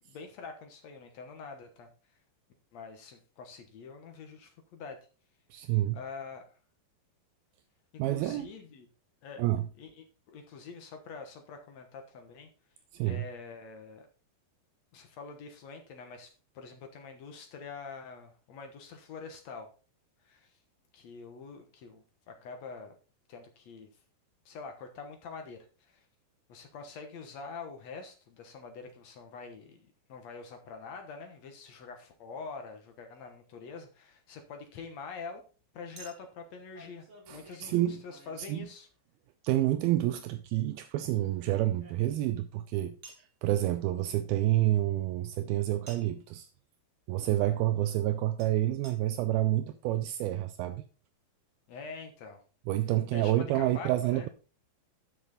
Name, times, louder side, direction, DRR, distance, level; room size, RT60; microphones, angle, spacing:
voice 1, 0.1-1.9 2.7-5.0 5.9-6.4 8.1-8.9 9.2-9.4 9.8-12.5 13.0-14.1 14.9-19.7 20.2-20.6 20.9-23.0 23.3-23.9 24.5-26.1 26.5-35.4 35.7-38.9 51.7-52.4 53.1-54.3, left 5 dB, 60° left, 1.9 m, -45 dB
voice 2, 5.5-6.0 8.0-8.5 9.4-9.7 12.9-13.2 37.3-38.0 38.5-38.7 39.4-43.0 43.4-46.5 47.1-50.8 52.7-54.3, right 14 dB, 80° right, 2.4 m, -28 dB
Chink clink, 33.1-33.3 36.0-39.1 40.7-42.4 43.0-43.3 45.9-46.2 48.4-48.5 48.8-49.0 49.6-49.7 49.9-50.0, right 2 dB, 35° right, 1.2 m, -54 dB
11.0 x 6.3 x 4.0 m
omnidirectional pair, 4.5 m